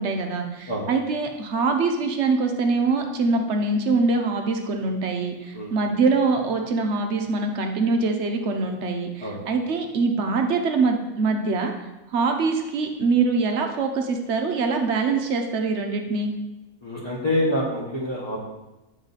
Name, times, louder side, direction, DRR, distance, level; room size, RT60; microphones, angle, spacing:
voice 1, 0.0-11.7 12.1-16.3, right 4 dB, 60° right, 4 dB, 0.8 m, -24 dB
voice 2, 16.8-18.4, left 1 dB, 20° left, -7 dB, 0.9 m, -26 dB
9.0 x 3.2 x 4.0 m, 1.0 s
omnidirectional pair, 1.6 m